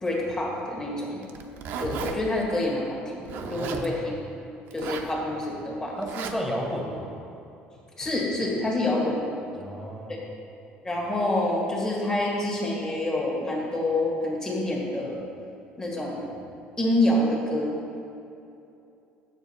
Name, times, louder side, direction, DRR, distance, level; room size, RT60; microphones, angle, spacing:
voice 1, 0.0-1.2 1.8-4.2 4.7-6.0 8.0-9.3 10.1-10.2 10.8-15.2 15.8-16.3 16.8-17.7, left 1 dB, 20° left, -3 dB, 1.7 m, -27 dB
Zipper (clothing), 1.2-2.2 3.3-3.9 4.7-5.1 6.0-6.3, right 7 dB, 60° right, 0.7 m, -34 dB
voice 2, 3.4-4.2 6.0-7.1 9.6-10.2, equal, ahead, -1 dB, 1.3 m, -33 dB
7.6 x 7.1 x 4.3 m, 2.7 s
cardioid pair, 130°, 4 cm